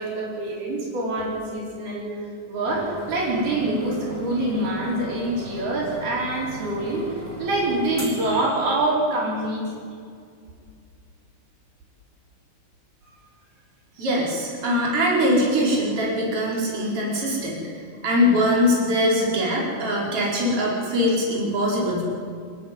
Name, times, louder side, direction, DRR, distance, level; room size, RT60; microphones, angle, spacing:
voice 1, 0.0-2.1 2.5-7.0 7.4-9.8, right 1 dB, 90° right, -4 dB, 7.0 m, -25 dB
sound 1, 2.6-9.2, right 2 dB, 5° right, 4.3 m, -39 dB
voice 2, 14.0-17.6 18.0-22.0, equal, 35° right, -3 dB, 5.6 m, -22 dB
27.5 x 11.5 x 9.6 m, 2.2 s
omnidirectional pair, 4.3 m